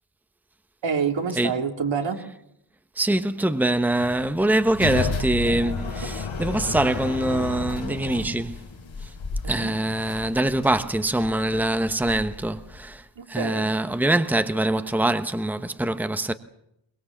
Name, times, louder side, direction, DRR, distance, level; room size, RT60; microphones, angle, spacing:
voice 1, 0.8-2.2 6.1-6.2 9.4-9.7 13.1-13.7, right 6 dB, 75° right, 3.1 m, -27 dB
voice 2, 3.0-6.1 6.4-8.6 9.0-9.1 9.5-16.3, right 1 dB, 5° right, 1.1 m, -24 dB
sound 1, 3.9-13.0, left 4 dB, 90° left, 3.7 m, -32 dB
23.0 x 21.5 x 7.4 m
cardioid pair, 80°, 45 cm